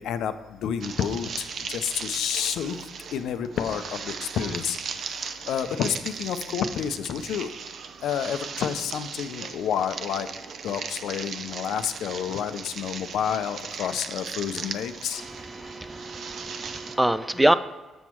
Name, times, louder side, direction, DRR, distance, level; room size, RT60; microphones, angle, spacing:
voice 1, 0.0-2.8 3.1-4.8 5.5-7.5 8.0-10.3 10.6-15.2, left 8 dB, 80° left, 10 dB, 0.5 m, -29 dB
sound 1, 0.8-17.0, right 6 dB, 60° right, 0.5 m, -37 dB
voice 2, 15.2-17.5, right 1 dB, 10° right, 13 dB, 0.4 m, -25 dB
7.1 x 6.2 x 4.4 m, 1.2 s
cardioid pair, 90°, 0 cm